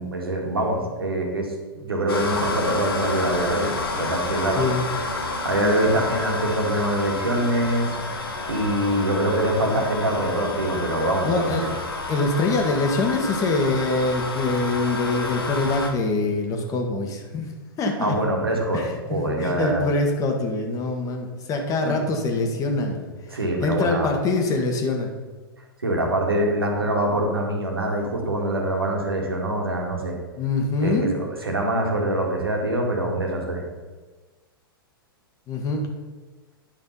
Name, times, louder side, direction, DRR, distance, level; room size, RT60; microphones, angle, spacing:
voice 1, 0.0-4.6 5.4-8.2 8.5-11.7 18.0-19.8 21.8-21.9 23.3-24.1 25.8-30.2 30.8-33.6, right 1 dB, 80° right, 1 dB, 1.9 m, -24 dB
sound 1, 2.1-15.9, left 3 dB, 75° left, 1.6 m, -30 dB
voice 2, 5.5-5.9 11.2-11.7 12.1-18.2 18.7-25.1 30.4-31.1 35.5-35.9, left 3 dB, 30° left, 3 dB, 1.5 m, -24 dB
10.5 x 5.2 x 5.5 m, 1.3 s
figure-of-eight pair, 100°, 12 cm